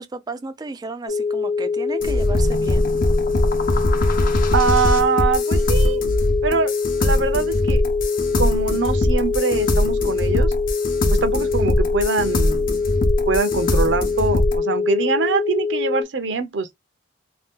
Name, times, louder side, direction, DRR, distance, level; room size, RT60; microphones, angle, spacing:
voice 1, 0.0-2.9, right 3 dB, 20° right, 0.3 m, -33 dB
sound 1, 1.1-16.0, left 5 dB, 75° left, 0.9 m, -24 dB
sound 2, 2.0-14.6, left 1 dB, 45° left, 0.7 m, -21 dB
voice 2, 4.5-6.0 6.4-6.7 7.0-7.8 8.4-10.5 11.1-12.8 13.3-16.7, right 5 dB, 70° right, 0.6 m, -23 dB
2.7 x 2.3 x 3.5 m
head